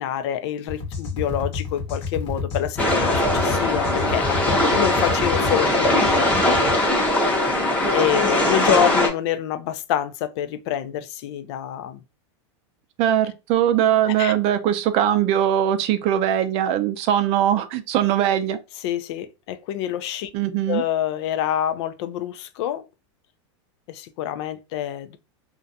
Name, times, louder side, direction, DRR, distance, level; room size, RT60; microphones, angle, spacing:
voice 1, 0.0-6.6 7.9-12.0 14.1-14.3 18.8-20.3 20.7-22.8 23.9-25.2, left 10 dB, 60° left, 0.4 m, -27 dB
sound 1, 0.7-6.8, left 5 dB, 35° left, 1.1 m, -30 dB
sound 2, 2.8-9.1, left 1 dB, 10° left, 0.9 m, -20 dB
voice 2, 13.0-18.6 20.3-20.8, right 10 dB, 45° right, 0.4 m, -21 dB
2.4 x 2.2 x 2.6 m
supercardioid pair, 125°, 15 cm